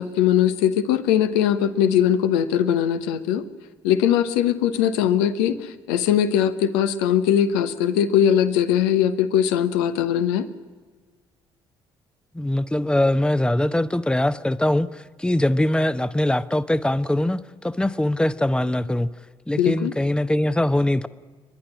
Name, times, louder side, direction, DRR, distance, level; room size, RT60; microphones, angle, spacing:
voice 1, 0.0-3.4 3.8-10.5 19.6-19.9, left 9 dB, 70° left, 10 dB, 1.1 m, -20 dB
voice 2, 12.3-19.1 19.5-21.1, left 1 dB, 5° left, 13 dB, 0.9 m, -22 dB
29.5 x 11.5 x 10.0 m, 1.4 s
figure-of-eight pair, 45°, 13 cm